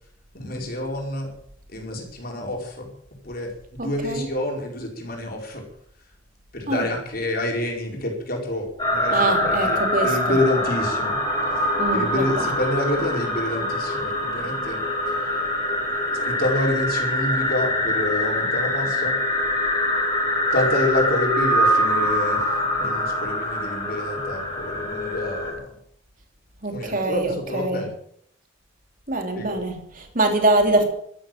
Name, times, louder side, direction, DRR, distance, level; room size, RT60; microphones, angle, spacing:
voice 1, 0.3-1.3 1.7-2.9 3.2-3.5 3.8-5.6 6.5-11.2 11.5-15.2 16.2-19.2 20.5-25.7 26.7-27.9 29.3-29.6, left 1 dB, 50° left, 0 dB, 4.9 m, -28 dB
voice 2, 3.8-4.3 6.7-6.8 9.1-10.1 11.8-12.2 26.6-27.8 29.1-30.8, right 2 dB, 45° right, 4 dB, 3.0 m, -23 dB
sound 1, 8.8-25.5, left 1 dB, 20° left, 5.9 m, -24 dB
13.0 x 13.0 x 7.6 m, 0.67 s
head